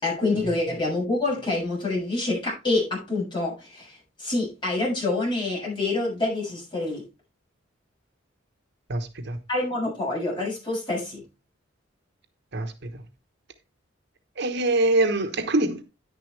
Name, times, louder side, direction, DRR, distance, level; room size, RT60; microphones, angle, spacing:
voice 1, 0.0-7.0 9.5-11.2, left 2 dB, 25° left, 7.0 m, -27 dB
voice 2, 8.9-9.4 12.5-13.0 14.4-15.8, right 2 dB, 55° right, 1.1 m, -24 dB
10.0 x 9.8 x 3.3 m
head